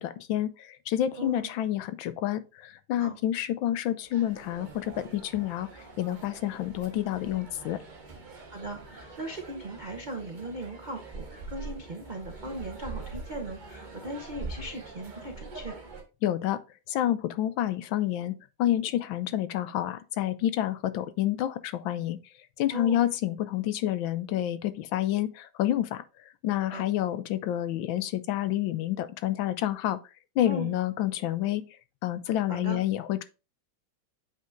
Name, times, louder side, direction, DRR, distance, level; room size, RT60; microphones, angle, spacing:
voice 1, 0.0-5.7 6.0-7.8 16.2-16.6 16.9-22.2 22.6-26.0 26.4-30.0 30.4-31.6 32.0-33.2, left 12 dB, 75° left, 1.4 m, -29 dB
voice 2, 1.2-1.5 3.0-3.2 8.5-15.8 22.7-23.0 26.7-26.9 30.5-30.7 32.5-32.8, right 1 dB, 65° right, 0.4 m, -38 dB
sound 1, 4.0-16.0, right 3 dB, 30° right, 1.1 m, -44 dB
7.8 x 5.6 x 2.5 m
omnidirectional pair, 2.2 m